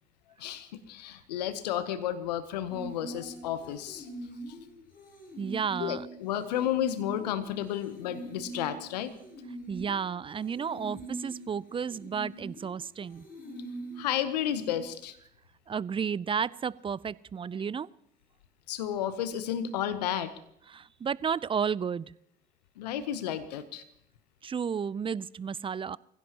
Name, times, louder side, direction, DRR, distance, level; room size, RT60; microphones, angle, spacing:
voice 1, 0.4-4.1 4.5-4.6 5.8-9.1 14.0-15.2 18.7-20.3 22.8-23.8, left 10 dB, 85° left, 13 dB, 0.8 m, -32 dB
sound 1, 2.7-14.8, right 2 dB, 45° left, 6.7 m, -44 dB
voice 2, 5.4-6.1 9.7-13.3 15.7-17.9 20.7-22.1 24.4-26.0, right 7 dB, 25° right, 22 dB, 0.5 m, -32 dB
25.0 x 16.0 x 2.9 m, 0.74 s
hypercardioid pair, 60°, 21 cm